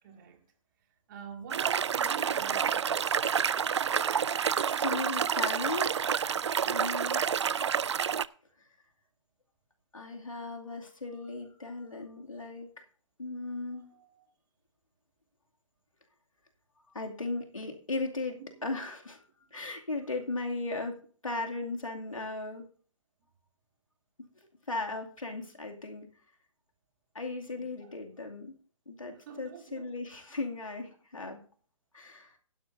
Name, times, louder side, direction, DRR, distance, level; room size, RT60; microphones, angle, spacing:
voice 1, 0.0-0.5 1.1-3.1 13.7-14.3 27.6-27.9 28.2-28.3 29.1-29.9, right 7 dB, 35° right, 2.3 m, -47 dB
sound 1, 1.5-8.3, right 7 dB, 55° right, 0.4 m, -29 dB
voice 2, 4.7-6.1 6.6-7.2 9.9-12.8 13.2-13.9 16.9-19.2 19.5-22.7 24.7-26.1 27.1-28.5 28.9-31.4 31.9-32.4, left 3 dB, 75° left, 2.5 m, -37 dB
16.0 x 11.5 x 2.7 m
figure-of-eight pair, 130°, 17 cm